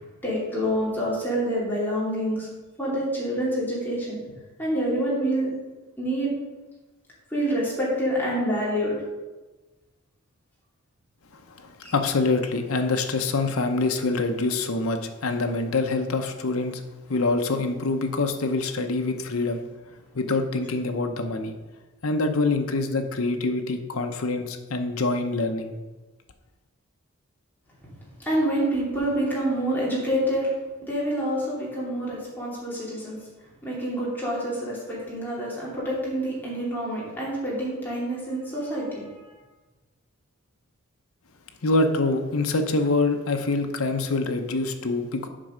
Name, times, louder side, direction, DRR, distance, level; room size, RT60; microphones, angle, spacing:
voice 1, 0.2-2.5 2.8-4.2 4.6-5.5 6.0-6.3 7.3-8.9 11.8-11.9 28.2-30.5 30.8-33.2 33.6-39.0, equal, 10° left, -7 dB, 2.8 m, -27 dB
voice 2, 11.3-16.8 17.1-19.6 20.1-21.5 22.0-25.8 41.6-45.3, left 3 dB, 90° left, 6 dB, 0.8 m, -25 dB
7.6 x 5.4 x 5.0 m, 1.2 s
head